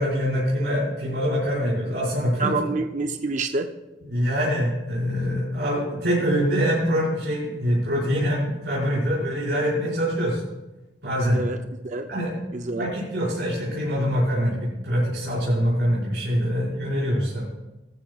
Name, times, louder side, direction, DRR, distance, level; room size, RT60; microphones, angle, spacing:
voice 1, 0.0-2.6 4.1-10.4 11.0-11.4 12.1-12.4 12.8-17.4, equal, 75° right, -8 dB, 5.2 m, -24 dB
voice 2, 2.4-3.7 11.3-11.6 11.8-12.1 12.5-12.9, right 3 dB, 45° right, 6 dB, 0.6 m, -27 dB
17.0 x 14.0 x 2.4 m, 1.0 s
head